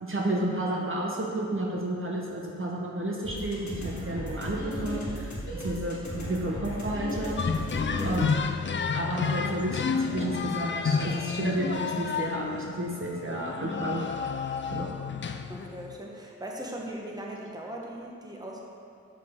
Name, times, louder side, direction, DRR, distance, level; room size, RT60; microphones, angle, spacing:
voice 1, 0.0-5.3 5.6-7.4 8.0-8.3 8.9-14.3 14.7-14.9, right 1 dB, 45° right, -2 dB, 1.0 m, -31 dB
sound 1, 3.2-8.3, equal, 75° left, 1.6 m, -36 dB
sound 2, 7.4-16.0, left 5 dB, 40° left, 0.4 m, -30 dB
voice 2, 7.9-8.3 15.4-18.6, right 1 dB, 15° right, -2 dB, 1.1 m, -39 dB
7.3 x 6.3 x 3.6 m, 2.5 s
wide cardioid pair, 65°, 29 cm